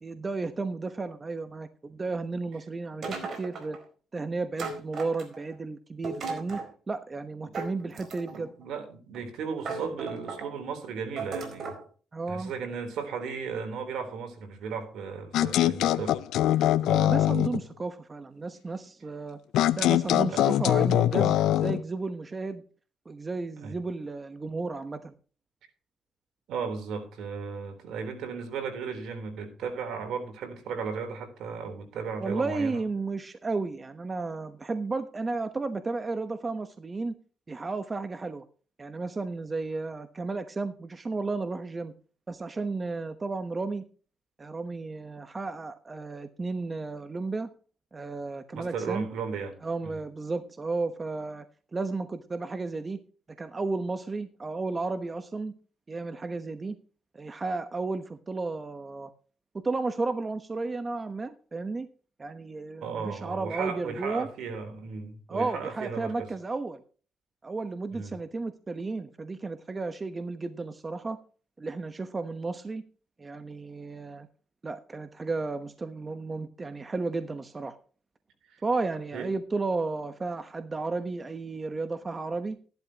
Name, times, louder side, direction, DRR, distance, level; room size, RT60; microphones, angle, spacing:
voice 1, 0.0-3.8 4.1-6.6 6.9-8.5 12.1-12.5 16.8-19.4 19.8-22.6 23.1-25.1 32.2-37.1 37.5-38.4 38.8-41.9 42.3-43.8 44.4-47.5 47.9-49.1 49.6-51.4 51.7-53.0 53.4-55.5 55.9-56.8 57.1-59.1 59.6-61.9 62.2-64.3 65.3-66.8 67.4-71.2 71.6-72.8 73.2-74.3 74.6-77.8 78.6-82.6, right 3 dB, 30° right, 10 dB, 1.0 m, -33 dB
sound 1, 3.0-3.8 4.6-5.5 6.0-6.7 7.5-8.5 9.1-9.2 9.6-10.5 11.2-11.8, right 4 dB, 55° right, 4.3 m, -36 dB
voice 2, 8.3-11.8 12.3-16.2 20.3-20.4 23.6-23.8 26.5-32.8 48.5-49.6 49.8-49.9 62.8-66.3 67.9-68.2 78.5-78.6 79.1-79.3, right 5 dB, 80° right, 6 dB, 3.7 m, -35 dB
sound 2, 15.3-17.6 19.5-21.8, left 12 dB, 85° left, 0.6 m, -23 dB
14.0 x 11.5 x 2.9 m, 0.39 s
cardioid pair, 90°, 0 cm